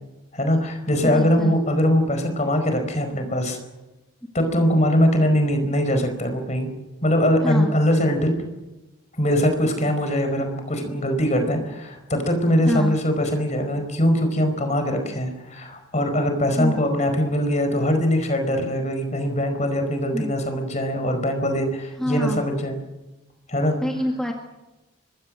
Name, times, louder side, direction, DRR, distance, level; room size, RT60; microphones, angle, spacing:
voice 1, 0.3-3.6 4.3-6.7 7.0-8.4 9.2-22.8 23.5-23.7, equal, 35° left, 6 dB, 4.8 m, -22 dB
voice 2, 1.0-1.6 7.4-7.8 9.7-9.9 12.6-13.0 16.6-16.8 20.1-20.3 22.0-22.5 23.8-24.3, left 1 dB, 5° left, 1 dB, 1.9 m, -26 dB
25.0 x 22.0 x 6.4 m, 1.0 s
head